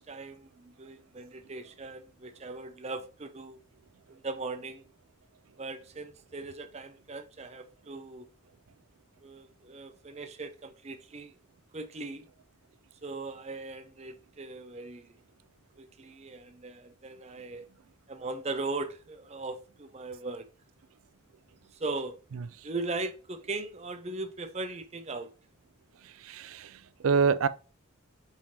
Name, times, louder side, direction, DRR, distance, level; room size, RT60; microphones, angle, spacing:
voice 1, 0.0-3.6 4.1-4.8 5.6-8.3 9.2-11.3 11.7-12.3 13.0-15.2 15.8-17.7 18.1-20.5 21.7-22.2 22.6-25.3, right 3 dB, 30° right, 0.5 m, -39 dB
voice 2, 26.2-27.5, right 5 dB, 90° right, 0.4 m, -26 dB
5.3 x 3.4 x 2.7 m
head